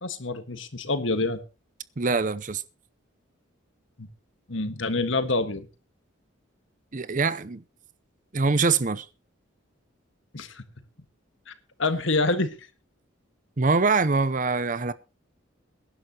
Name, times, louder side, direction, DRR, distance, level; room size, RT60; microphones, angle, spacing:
voice 1, 0.0-1.4 4.0-4.1 4.5-5.7 10.3-10.6 11.5-11.6 11.8-12.5, left 3 dB, 70° left, 1.6 m, -26 dB
voice 2, 2.0-2.6 6.9-7.6 8.3-9.1 13.6-14.9, right 4 dB, 40° right, 0.6 m, -24 dB
22.0 x 11.0 x 2.9 m
head